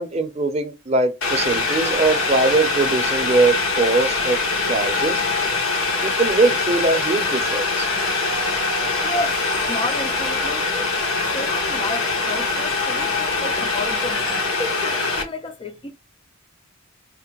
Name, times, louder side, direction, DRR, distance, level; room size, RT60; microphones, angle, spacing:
voice 1, 0.0-4.4 4.7-5.2 6.0-7.9, right 3 dB, 30° right, 0.6 m, -21 dB
Boiling, 1.2-15.2, left 3 dB, 90° left, 1.1 m, -23 dB
sound 1, 1.2-14.4, left 2 dB, 50° left, 1.1 m, -35 dB
voice 2, 9.0-9.4 9.7-14.2 14.6-15.9, left 2 dB, 25° left, 0.4 m, -31 dB
5.0 x 2.1 x 3.0 m
head